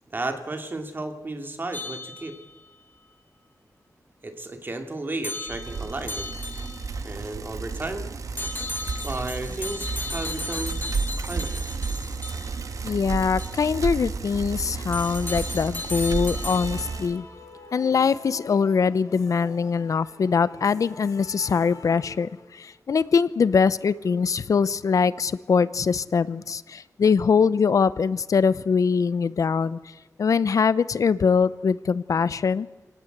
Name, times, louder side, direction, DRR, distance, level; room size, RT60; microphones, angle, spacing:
voice 1, 0.1-2.3 4.2-6.3 7.0-8.1 9.0-10.8 11.2-11.6, right 2 dB, 35° right, 5 dB, 2.8 m, -33 dB
sound 1, 1.7-2.7 5.2-7.0 8.4-12.7 13.4-13.6 14.9-17.0, left 2 dB, 35° left, 1.5 m, -35 dB
Bicycle, 5.5-17.2, right 4 dB, 70° right, 1.3 m, -32 dB
voice 2, 12.8-17.3 17.7-29.9 30.2-32.7, left 5 dB, 70° left, 17 dB, 0.7 m, -23 dB
sound 2, 16.4-22.6, left 3 dB, 90° left, 5.8 m, -46 dB
28.0 x 18.5 x 8.1 m, 1.2 s
wide cardioid pair, 110°, 6 cm